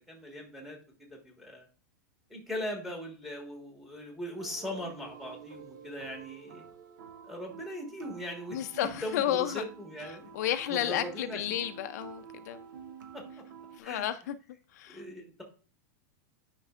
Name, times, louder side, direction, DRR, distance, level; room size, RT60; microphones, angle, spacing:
voice 1, 0.1-1.7 2.3-6.6 7.2-8.6 9.0-11.6 13.1-13.2 13.8-14.0 14.9-15.4, equal, ahead, 1.5 m, -40 dB
sound 1, 4.4-13.8, right 7 dB, 85° right, 1.2 m, -49 dB
voice 2, 8.5-9.6 10.3-12.6 13.8-14.3 14.7-15.0, left 11 dB, 60° left, 0.5 m, -32 dB
9.7 x 5.3 x 2.4 m
supercardioid pair, 160°, 10 cm